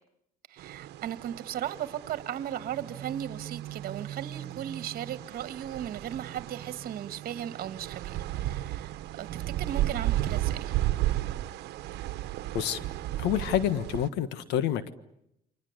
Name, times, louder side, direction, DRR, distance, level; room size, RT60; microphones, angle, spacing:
voice 1, 0.5-8.9 9.2-10.7, right 10 dB, 60° right, 12 dB, 1.8 m, -37 dB
sound 1, 0.6-14.1, right 14 dB, 80° right, 1.2 m, -34 dB
voice 2, 13.2-14.9, left 10 dB, 90° left, 13 dB, 1.6 m, -28 dB
29.0 x 25.0 x 8.2 m, 0.80 s
cardioid pair, 110°, 17 cm